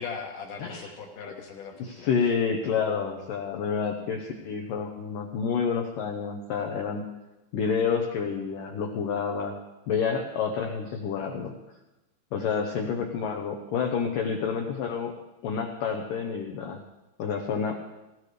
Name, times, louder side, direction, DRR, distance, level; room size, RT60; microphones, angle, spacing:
voice 1, 0.0-2.3, left 5 dB, 65° left, 3 dB, 2.1 m, -39 dB
voice 2, 1.8-7.0 7.5-9.5 9.9-11.5 12.3-15.2 15.4-16.8 17.2-17.8, left 6 dB, 85° left, 2 dB, 1.9 m, -29 dB
19.5 x 16.0 x 3.4 m, 0.99 s
omnidirectional pair, 5.4 m